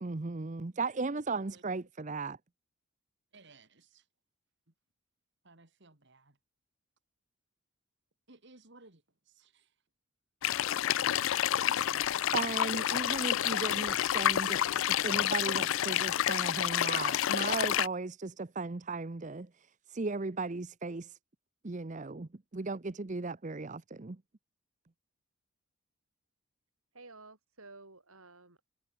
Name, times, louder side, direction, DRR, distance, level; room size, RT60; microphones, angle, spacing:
voice 1, 0.0-2.4 12.3-14.6 14.9-19.5 19.9-21.2 21.6-24.2, right 3 dB, 35° right, 0.6 m, -36 dB
voice 2, 3.3-4.1 5.4-6.4 8.3-9.7 11.9-12.0, right 3 dB, 50° right, 2.4 m, -59 dB
sound 1, 10.4-17.9, left 11 dB, 60° left, 0.3 m, -29 dB
voice 3, 26.9-28.6, right 3 dB, 75° right, 5.1 m, -53 dB
head